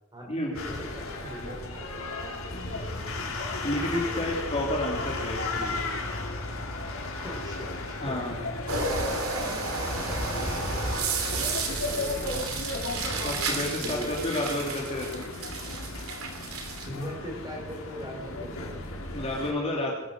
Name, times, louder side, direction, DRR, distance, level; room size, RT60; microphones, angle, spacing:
voice 1, 0.1-3.2 3.8-4.5 7.0-8.4 8.7-9.0 10.0-10.5 11.0-12.2 12.9-13.2 13.7-14.2 16.8-19.0 19.9-20.0, equal, 20° right, 0 dB, 5.1 m, -42 dB
sound 1, 0.5-19.5, left 2 dB, 80° left, 3.2 m, -35 dB
voice 2, 3.6-5.8 8.0-8.4 13.2-15.3 19.1-20.0, left 1 dB, 30° left, -2 dB, 2.7 m, -30 dB
sound 2, 8.7-16.9, right 3 dB, 85° right, 3.1 m, -32 dB
20.5 x 10.0 x 6.5 m, 1.1 s
head